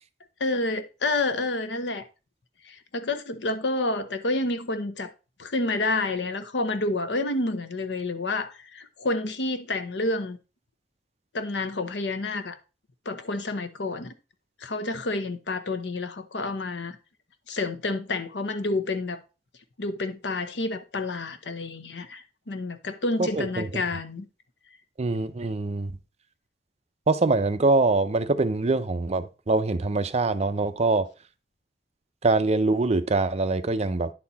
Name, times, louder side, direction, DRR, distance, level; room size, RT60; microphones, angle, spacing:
voice 1, 0.4-2.0 2.7-5.1 5.4-10.4 11.3-12.6 13.1-14.1 14.6-17.0 17.5-19.2 19.8-24.2, left 2 dB, 90° left, 0.9 m, -29 dB
voice 2, 23.2-23.8 25.0-25.9 27.1-31.1 32.2-34.1, right 3 dB, 40° right, 0.6 m, -24 dB
10.5 x 4.2 x 4.1 m
head